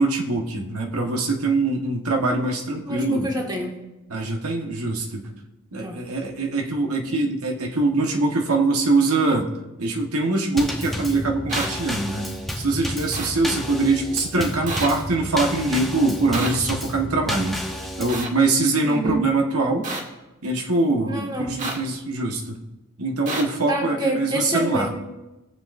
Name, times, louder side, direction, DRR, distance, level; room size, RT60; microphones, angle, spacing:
voice 1, 0.0-3.3 4.1-5.3 5.7-9.5 9.8-12.3 12.6-17.6 18.0-19.9 20.4-22.6 23.0-24.9, right 2 dB, 85° right, 1 dB, 1.4 m, -23 dB
voice 2, 2.9-3.8 5.8-6.0 18.8-19.2 21.1-21.6 23.7-24.9, right 1 dB, 20° right, 0 dB, 1.7 m, -27 dB
Drum kit / Snare drum / Bass drum, 10.6-18.2, left 1 dB, ahead, 1.0 m, -31 dB
sound 1, 11.5-11.7 13.1-13.3 14.7-14.9 16.3-16.5 18.1-18.3 19.8-20.0 21.6-21.8 23.3-23.4, right 3 dB, 35° right, 1.6 m, -28 dB
21.5 x 7.8 x 2.6 m, 1.0 s
head